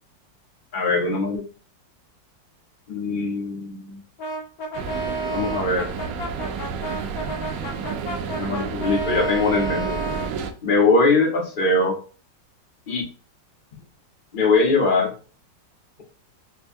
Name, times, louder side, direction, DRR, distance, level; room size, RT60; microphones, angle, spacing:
voice 1, 0.7-1.4 2.9-4.0 5.3-5.9 8.4-10.0 10.6-12.0 12.9-13.0 14.3-15.1, left 3 dB, 45° left, 2 dB, 0.7 m, -21 dB
Brass instrument, 4.2-10.4, right 2 dB, 60° left, 1.1 m, -31 dB
sound 1, 4.7-10.5, right 6 dB, 85° right, 1.3 m, -31 dB
5.1 x 2.2 x 2.5 m, 0.37 s
omnidirectional pair, 2.0 m